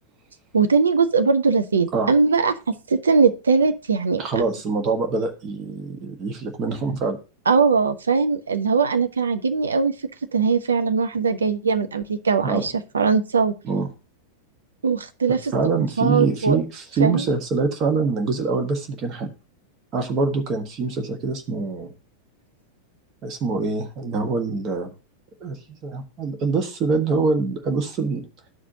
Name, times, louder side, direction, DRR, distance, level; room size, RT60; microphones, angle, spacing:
voice 1, 0.5-4.2 7.5-9.9 10.3-13.5 14.8-15.5 16.0-16.6 17.0-17.3, right 5 dB, 70° right, 9 dB, 0.7 m, -20 dB
voice 2, 4.2-7.2 12.4-12.6 13.6-13.9 15.5-19.3 19.9-21.9 23.2-24.9 25.4-28.2, right 4 dB, 35° right, 5 dB, 1.3 m, -24 dB
12.5 x 5.0 x 2.7 m, 0.32 s
figure-of-eight pair, 90°, 0 cm